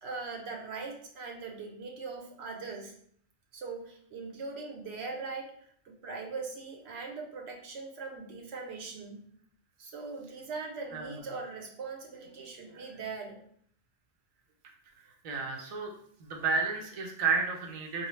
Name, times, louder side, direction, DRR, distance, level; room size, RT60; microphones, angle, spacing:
voice 1, 0.0-2.9 3.5-9.2 9.8-13.4, right 4 dB, 70° right, 2 dB, 0.9 m, -41 dB
voice 2, 15.2-15.9 16.2-18.1, right 4 dB, 45° right, 1 dB, 0.5 m, -31 dB
3.9 x 2.2 x 3.1 m, 0.62 s
omnidirectional pair, 1.2 m